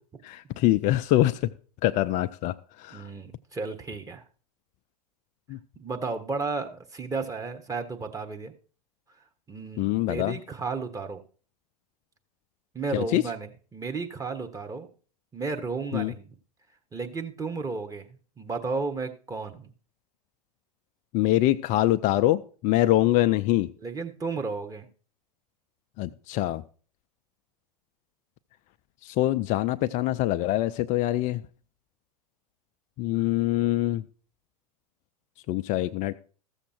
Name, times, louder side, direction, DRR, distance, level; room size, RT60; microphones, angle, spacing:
voice 1, 0.2-1.5 1.8-3.1 5.5-5.6 9.8-10.4 12.9-13.2 15.9-16.1 21.1-23.7 26.0-26.6 29.0-31.4 33.0-34.0 35.5-36.1, left 15 dB, 40° left, 10 dB, 0.4 m, -24 dB
voice 2, 2.9-4.2 5.8-8.5 9.5-11.2 12.7-14.9 15.3-16.3 16.9-19.7 23.8-24.9, right 4 dB, 15° right, 5 dB, 1.3 m, -33 dB
14.5 x 7.2 x 4.4 m, 0.40 s
hypercardioid pair, 95°, 20 cm